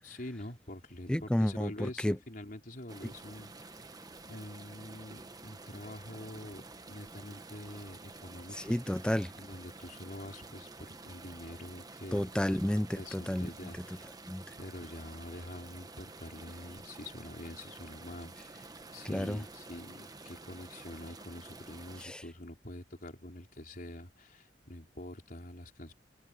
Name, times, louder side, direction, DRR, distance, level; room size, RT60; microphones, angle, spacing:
voice 1, 0.0-3.8 4.2-6.6 6.9-8.8 9.4-12.3 12.9-14.0 14.6-25.9, left 1 dB, 50° left, 4.1 m, -46 dB
voice 2, 1.1-2.2 8.6-9.3 12.1-13.5 14.3-14.4 19.1-19.4 22.0-22.2, left 1 dB, 5° left, 0.4 m, -31 dB
sound 1, 2.9-22.0, right 3 dB, 20° right, 1.1 m, -50 dB
head